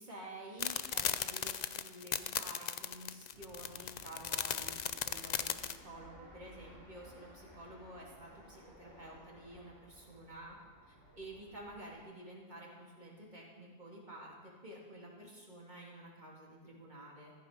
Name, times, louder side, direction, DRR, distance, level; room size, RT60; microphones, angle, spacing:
voice 1, 0.0-10.6 10.9-17.3, right 1 dB, 45° right, -3 dB, 3.4 m, -51 dB
sound 1, 0.6-5.8, left 8 dB, 50° left, 0.6 m, -36 dB
Fixed-wing aircraft airplane, 3.3-12.0, right 1 dB, 70° left, 6.6 m, -58 dB
14.5 x 14.0 x 5.4 m, 1.4 s
omnidirectional pair, 1.0 m